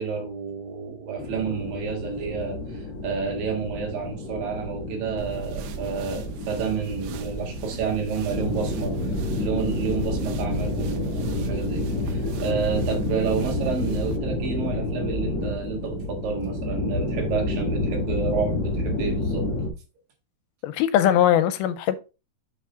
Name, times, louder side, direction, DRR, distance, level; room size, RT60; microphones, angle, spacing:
voice 1, 0.0-9.1 9.4-19.5, right 6 dB, 70° right, 3.3 m, -30 dB
sound 1, 1.2-19.7, left 1 dB, 30° left, 1.5 m, -29 dB
sound 2, 5.2-14.2, right 7 dB, 85° right, 2.6 m, -39 dB
voice 2, 20.6-22.0, left 11 dB, 85° left, 2.6 m, -20 dB
7.1 x 5.2 x 3.8 m
omnidirectional pair, 4.3 m